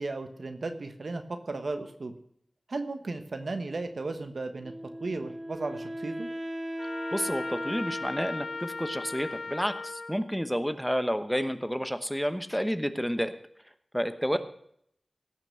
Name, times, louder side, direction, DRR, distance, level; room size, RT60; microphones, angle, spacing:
voice 1, 0.0-2.1 2.7-4.7 5.0-6.3 14.3-14.4, right 3 dB, 75° right, 8 dB, 1.2 m, -35 dB
Wind instrument woodwind instrument, 4.6-9.7, equal, 30° right, 1.6 m, -39 dB
Trumpet, 6.8-10.2, left 3 dB, 90° left, 1.2 m, -37 dB
voice 2, 7.1-13.3 13.9-14.4, equal, ahead, 10 dB, 1.0 m, -30 dB
17.0 x 6.0 x 7.6 m, 0.69 s
wide cardioid pair, 50°, 0 cm